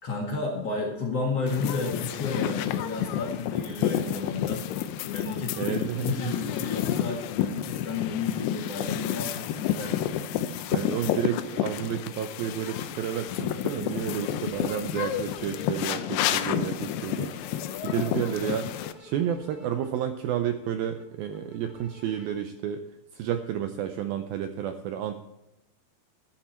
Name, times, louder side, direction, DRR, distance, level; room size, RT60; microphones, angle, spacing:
voice 1, 0.0-4.7 5.1-10.0, left 3 dB, 50° left, -1 dB, 2.1 m, -32 dB
sound 1, 1.5-18.9, left 11 dB, 80° left, 2.6 m, -30 dB
voice 2, 5.6-6.3 10.7-17.3 17.8-18.7 19.0-22.8 23.1-25.2, right 10 dB, 80° right, 8 dB, 2.1 m, -31 dB
sound 2, 12.0-12.1 12.3-14.2 14.5-15.5 15.8-22.3, left 3 dB, 15° left, 2.6 m, -52 dB
13.5 x 11.5 x 4.3 m, 0.92 s
omnidirectional pair, 4.9 m